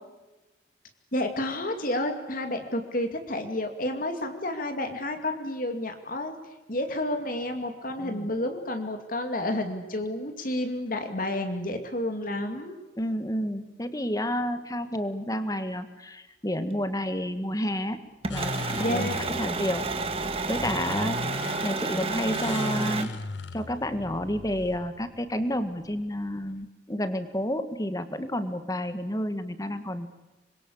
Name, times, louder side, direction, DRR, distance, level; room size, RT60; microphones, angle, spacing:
voice 1, 1.1-6.4 6.7-12.8 18.8-19.2, left 1 dB, 50° left, 6 dB, 2.4 m, -30 dB
voice 2, 8.0-8.3 13.0-18.0 18.3-19.8 20.5-21.2 21.6-23.1 23.5-30.1, equal, 20° left, 10 dB, 1.7 m, -30 dB
sound 1, 18.2-23.0, right 3 dB, 30° right, 1.9 m, -30 dB
sound 2, 18.3-26.6, left 3 dB, 80° left, 1.0 m, -38 dB
26.0 x 22.5 x 8.6 m, 1.1 s
head